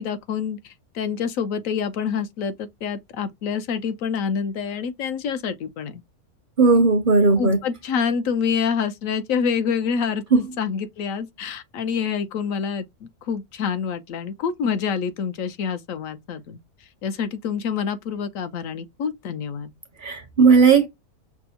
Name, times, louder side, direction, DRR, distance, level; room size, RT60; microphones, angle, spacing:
voice 1, 0.0-6.0 7.4-16.6 17.0-19.7, left 6 dB, 70° left, 1.0 m, -27 dB
voice 2, 6.6-7.6 10.3-10.4 20.0-20.9, right 4 dB, 50° right, 0.6 m, -16 dB
6.0 x 2.0 x 2.7 m
omnidirectional pair, 1.6 m